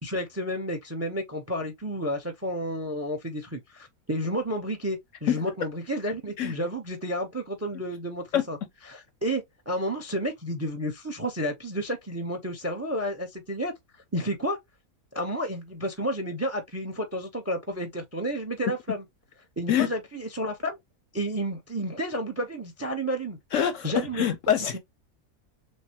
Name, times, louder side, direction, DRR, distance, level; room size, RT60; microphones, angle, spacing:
voice 1, 0.0-8.6 8.9-13.7 14.1-14.6 15.1-19.0 19.6-20.8 21.1-23.4 23.8-24.3 24.7-24.8, equal, 15° right, 0.5 m, -31 dB
voice 2, 23.5-24.8, left 9 dB, 70° left, 0.8 m, -25 dB
6.3 x 2.1 x 2.8 m
omnidirectional pair, 1.6 m